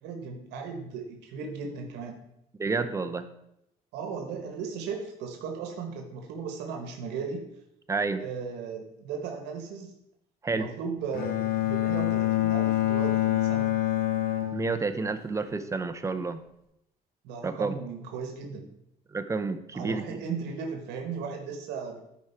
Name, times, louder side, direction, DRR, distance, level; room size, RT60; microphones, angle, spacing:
voice 1, 0.0-2.2 3.9-7.4 8.2-9.9 10.5-13.7 17.2-18.7 19.7-22.0, right 5 dB, 85° right, 3 dB, 1.2 m, -36 dB
voice 2, 2.6-3.3 7.9-8.2 10.4-10.7 14.5-16.4 17.4-17.8 19.1-20.2, right 4 dB, 15° right, 9 dB, 0.7 m, -30 dB
Bowed string instrument, 11.1-15.2, left 14 dB, 60° left, 1.5 m, -26 dB
10.5 x 4.7 x 4.3 m, 0.80 s
cardioid pair, 110°, 17 cm